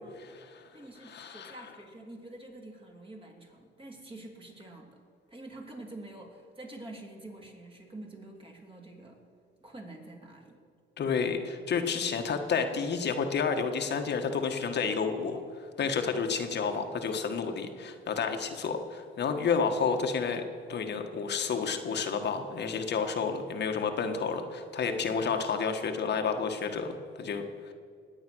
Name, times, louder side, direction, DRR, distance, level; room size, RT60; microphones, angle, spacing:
voice 1, 0.2-0.7 1.0-1.6 11.0-20.4 20.7-27.7, left 5 dB, 60° left, 5 dB, 1.4 m, -30 dB
voice 2, 0.7-5.0 5.3-9.2 9.6-10.6 17.6-17.7, right 2 dB, 25° right, 0 dB, 3.3 m, -47 dB
21.0 x 8.7 x 6.2 m, 2.3 s
cardioid pair, 90°, 20 cm